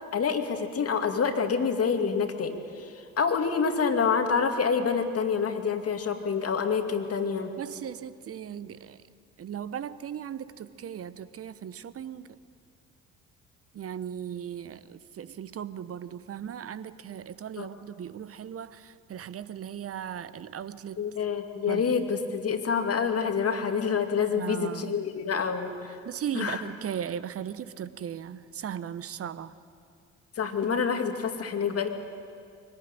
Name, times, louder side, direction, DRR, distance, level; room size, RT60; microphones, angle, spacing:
voice 1, 0.1-7.5 17.6-17.7 21.0-26.0 26.3-26.6 30.4-31.9, left 6 dB, 35° left, 5 dB, 2.5 m, -27 dB
voice 2, 7.6-9.0 9.4-12.3 13.7-21.0 21.7-22.0 24.3-25.0 26.0-29.6, right 9 dB, 35° right, 15 dB, 1.0 m, -37 dB
24.5 x 18.5 x 9.1 m, 2.4 s
figure-of-eight pair, 50°, 40 cm